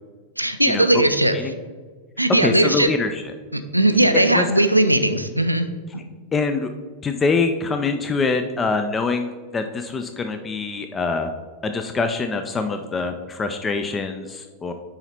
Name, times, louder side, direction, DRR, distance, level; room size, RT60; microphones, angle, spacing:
voice 1, 0.4-1.5 2.2-2.9 3.5-5.7, right 1 dB, 85° right, 9 dB, 0.5 m, -18 dB
voice 2, 2.4-3.2 4.1-4.5 6.3-6.7 7.0-11.3 11.6-14.7, left 4 dB, 20° left, 7 dB, 0.5 m, -24 dB
9.8 x 4.0 x 4.3 m, 1.5 s
figure-of-eight pair, 90°, 0 cm